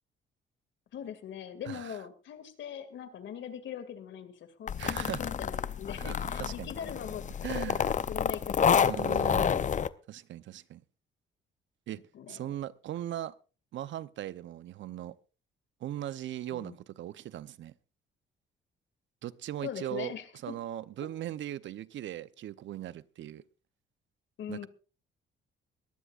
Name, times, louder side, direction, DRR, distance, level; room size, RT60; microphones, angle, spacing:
voice 1, 0.9-7.2 7.5-9.3 12.1-12.5 16.5-16.8 19.6-20.6 24.4-24.7, left 8 dB, 70° left, 2.3 m, -42 dB
voice 2, 1.6-2.0 4.8-5.2 6.0-6.7 7.4-7.9 8.8-9.7 10.1-10.8 11.9-12.0 12.3-13.4 13.7-15.1 15.8-17.7 19.2-20.1 20.4-23.4 24.5-24.7, right 12 dB, 70° right, 0.7 m, -39 dB
sound 1, 4.7-9.9, left 7 dB, 40° left, 0.6 m, -29 dB
21.5 x 15.5 x 2.5 m
cardioid pair, 90°, 20 cm